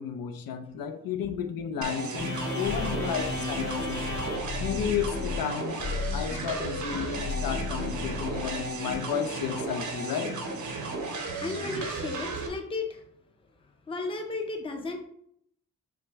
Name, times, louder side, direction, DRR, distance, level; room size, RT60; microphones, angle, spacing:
voice 1, 0.0-4.1 4.6-5.8 6.1-10.4, left 8 dB, 90° left, 0.5 m, -32 dB
sound 1, 1.8-12.5, right 3 dB, 60° right, 0.7 m, -34 dB
sound 2, 2.2-8.9, left 3 dB, 65° left, 1.3 m, -34 dB
voice 2, 11.4-13.0 13.9-15.0, left 3 dB, 15° left, 0.4 m, -34 dB
5.7 x 2.1 x 3.4 m
wide cardioid pair, 170°, 33 cm